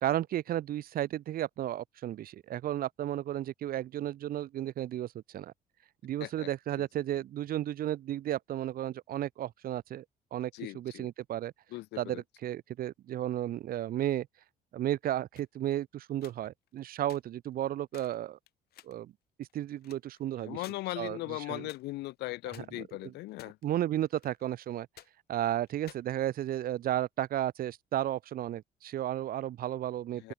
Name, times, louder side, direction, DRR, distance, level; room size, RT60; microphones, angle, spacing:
voice 1, 0.0-5.5 6.0-10.0 10.3-11.5 12.0-14.3 14.7-18.4 18.8-19.1 19.4-20.6 21.0-21.7 22.8-22.9 23.6-24.9 25.3-30.3, right 12 dB, 60° right, 1.2 m, -33 dB
voice 2, 6.2-6.5 6.8-6.9 10.5-11.1 11.7-12.2 20.4-23.6 30.1-30.3, left 19 dB, 85° left, 2.5 m, -39 dB
sound 1, 15.4-15.6 16.1-16.8 17.1-17.2 17.6-17.7 17.9-18.2 18.5-19.0 19.4-20.2 20.6-20.8 21.1-21.2 21.7-22.1 22.5-23.8 24.0-24.7 25.0-25.1 25.7-26.8, left 13 dB, 70° left, 3.6 m, -54 dB
open air
cardioid pair, 110°, 17 cm